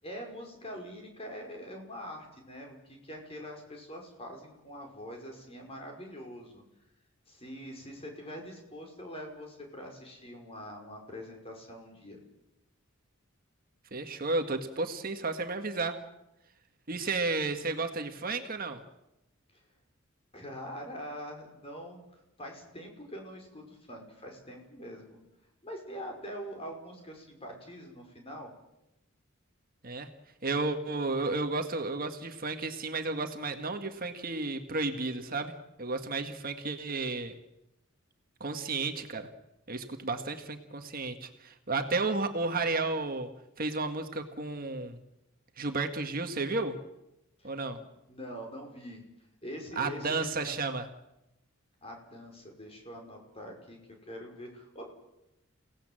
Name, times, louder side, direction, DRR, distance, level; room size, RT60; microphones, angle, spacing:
voice 1, 0.0-6.6 7.3-12.2 19.5-19.6 20.3-22.0 22.4-25.2 25.6-28.5 47.4-49.0 49.4-50.5 51.8-54.9, equal, 30° left, 2 dB, 5.4 m, -44 dB
voice 2, 13.9-16.0 16.9-18.8 29.8-30.1 30.4-37.3 38.4-39.3 39.7-43.3 43.6-45.0 45.6-46.8 47.4-47.8 49.7-50.9, right 3 dB, 45° right, 6 dB, 1.7 m, -32 dB
30.0 x 17.5 x 7.7 m, 0.90 s
head